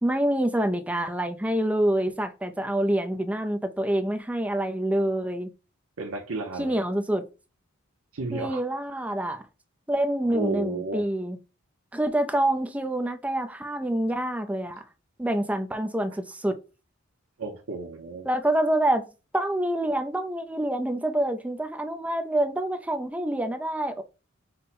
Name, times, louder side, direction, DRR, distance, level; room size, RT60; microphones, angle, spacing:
voice 1, 0.0-5.5 6.6-7.2 8.3-9.4 9.9-11.4 11.9-14.8 15.2-16.6 18.2-24.0, right 1 dB, 5° right, 0.4 m, -26 dB
voice 2, 6.0-6.8 8.1-8.6 8.9-9.0 10.2-11.1 17.4-18.3, right 2 dB, 85° right, 0.7 m, -33 dB
5.3 x 2.1 x 4.2 m
head